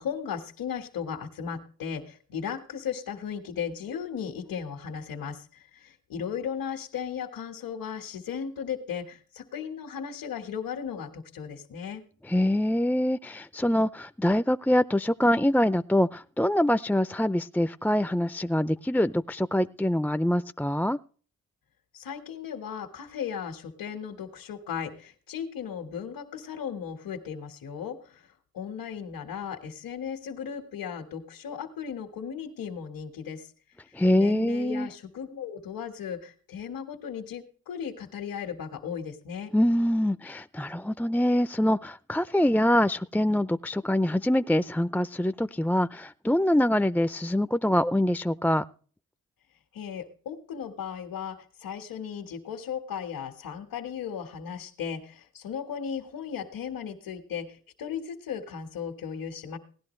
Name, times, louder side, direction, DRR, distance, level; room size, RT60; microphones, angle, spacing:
voice 1, 0.0-12.0 21.9-28.2 28.5-33.5 34.1-39.5 49.7-59.6, left 7 dB, 85° left, 3 dB, 1.6 m, -36 dB
voice 2, 12.3-21.0 33.9-34.9 39.5-48.6, left 1 dB, 5° left, 13 dB, 0.5 m, -24 dB
18.0 x 11.5 x 3.2 m, 0.41 s
cardioid pair, 50°, 34 cm